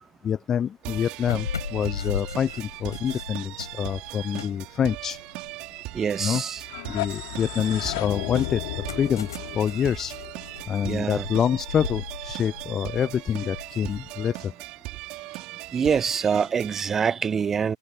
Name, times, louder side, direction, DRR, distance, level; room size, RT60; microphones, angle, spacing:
voice 1, 0.2-5.2 6.2-6.4 6.9-8.6 8.9-9.3 9.5-10.2 10.7-14.5, left 8 dB, 15° left, 0.6 m, -26 dB
sound 1, 0.8-16.8, right 22 dB, 30° right, 5.3 m, -39 dB
sound 2, 1.2-6.4 6.8-14.4, left 6 dB, 65° left, 7.4 m, -38 dB
voice 2, 5.9-6.6 10.8-11.2 15.7-17.8, right 6 dB, 15° right, 0.9 m, -25 dB
sound 3, 6.6-11.5, left 23 dB, 40° left, 4.3 m, -35 dB
figure-of-eight pair, 110°, 2 cm